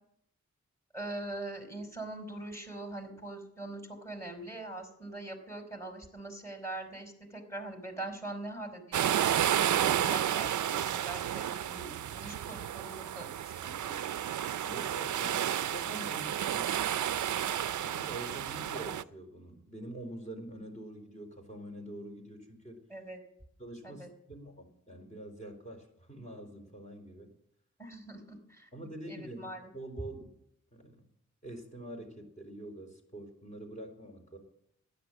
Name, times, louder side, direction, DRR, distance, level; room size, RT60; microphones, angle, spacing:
voice 1, 0.9-14.3 22.9-23.2 23.8-24.1 27.8-28.7 29.1-29.6, right 2 dB, 10° left, 5 dB, 5.0 m, -42 dB
sound 1, 8.9-19.0, right 10 dB, 80° right, 0.5 m, -31 dB
voice 2, 14.6-16.9 17.8-22.8 23.6-27.3 28.7-30.3 30.7-31.1 31.4-34.4, right 1 dB, 25° left, 3 dB, 4.3 m, -45 dB
13.0 x 10.5 x 7.4 m, 0.75 s
cardioid pair, 45°, 29 cm